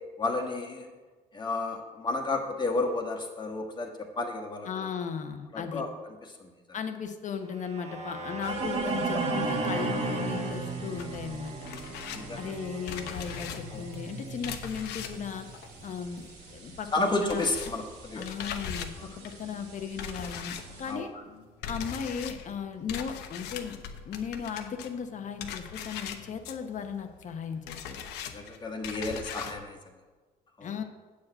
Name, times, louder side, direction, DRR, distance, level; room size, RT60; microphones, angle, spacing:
voice 1, 0.2-0.9 1.3-4.9 5.5-5.9 6.4-6.5 9.1-9.3 12.1-12.5 13.7-13.8 16.9-18.3 19.0-19.2 20.9-21.2 28.3-29.8 30.6-30.7, left 2 dB, 25° left, 1 dB, 1.4 m, -32 dB
voice 2, 4.7-5.8 6.7-11.7 12.4-15.5 15.8-16.2 16.5-16.9 17.2-17.4 18.1-21.1 21.7-23.8 24.0-28.0 30.6-30.8, left 6 dB, 45° left, 7 dB, 0.9 m, -36 dB
sound 1, 7.6-15.7, right 3 dB, 40° right, 1.6 m, -34 dB
sound 2, 8.4-20.9, right 3 dB, 80° right, 2.6 m, -51 dB
sound 3, 11.0-16.5 16.8-29.6, left 7 dB, 85° left, 0.9 m, -41 dB
8.4 x 4.9 x 7.5 m, 1.3 s
cardioid pair, 110°, 17 cm